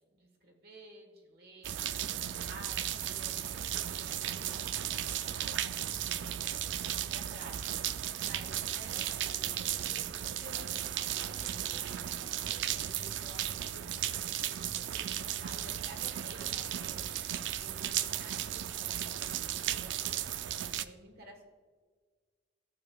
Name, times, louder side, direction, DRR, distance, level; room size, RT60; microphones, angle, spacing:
voice 1, 0.1-6.5 7.0-7.7 8.2-17.1 17.6-21.4, right 1 dB, 55° right, 1 dB, 1.4 m, -54 dB
sound 1, 1.6-20.8, right 11 dB, 75° right, 0.4 m, -35 dB
14.5 x 6.8 x 2.3 m, 1.6 s
head